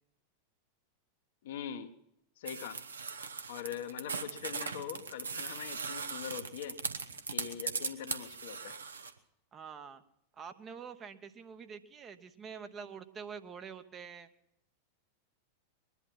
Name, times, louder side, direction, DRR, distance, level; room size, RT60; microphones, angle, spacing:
voice 1, 1.4-1.9 2.4-2.8 3.5-6.8 7.3-8.8, left 9 dB, 55° left, 7 dB, 1.1 m, -42 dB
sound 1, 2.5-9.1, right 5 dB, 75° right, 0.9 m, -39 dB
voice 2, 9.5-10.0 10.3-14.3, right 6 dB, 25° right, 9 dB, 0.9 m, -46 dB
21.0 x 11.0 x 5.8 m, 0.80 s
figure-of-eight pair, 90°, 0 cm